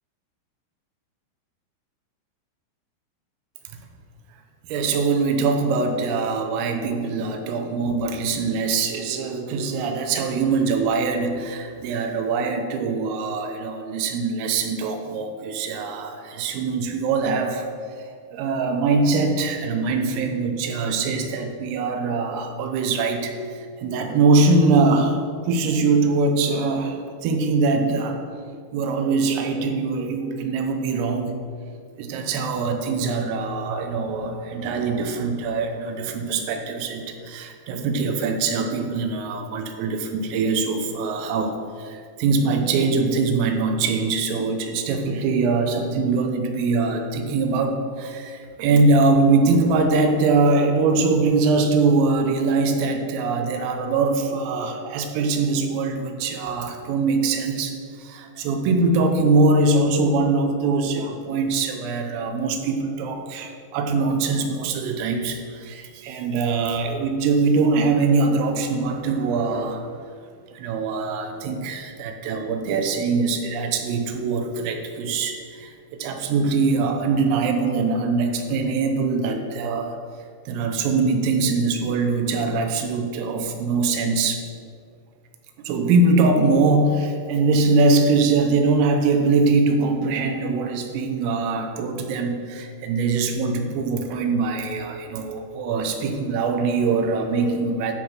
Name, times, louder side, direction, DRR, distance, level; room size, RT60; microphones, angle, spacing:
voice 1, 4.7-17.7 18.3-25.2 25.5-28.2 28.7-31.4 32.0-69.9 70.5-80.0 80.5-84.4 85.7-97.9, right 3 dB, 90° right, 5 dB, 3.5 m, -22 dB
13.0 x 4.8 x 5.7 m, 2.2 s
omnidirectional pair, 5.9 m